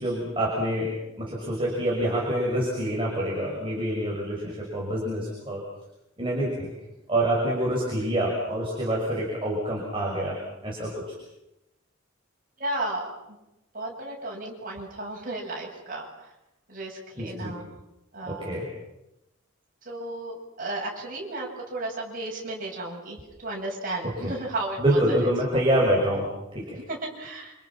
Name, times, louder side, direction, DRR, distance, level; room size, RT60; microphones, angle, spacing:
voice 1, 0.0-5.6 6.2-6.7 7.1-10.4 10.6-11.1 17.2-17.5 18.3-18.7 24.0-24.3 24.8-26.8, right 1 dB, 25° right, -3 dB, 6.3 m, -26 dB
voice 2, 12.6-13.4 13.7-16.3 16.7-17.7 18.1-18.6 19.8-25.6 26.9-27.5, right 2 dB, 40° right, -2 dB, 8.0 m, -34 dB
29.5 x 27.5 x 6.0 m, 0.91 s
head